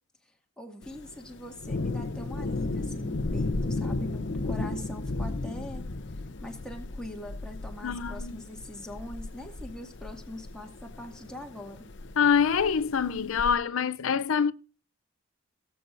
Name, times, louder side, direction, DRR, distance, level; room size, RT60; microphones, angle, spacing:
voice 1, 0.6-5.9 6.4-11.9, left 1 dB, 5° left, 2.0 m, -42 dB
Thunder, 0.8-13.5, left 2 dB, 60° left, 0.8 m, -35 dB
voice 2, 7.8-8.4 12.2-14.5, left 6 dB, 90° left, 0.5 m, -25 dB
18.0 x 8.5 x 2.6 m
head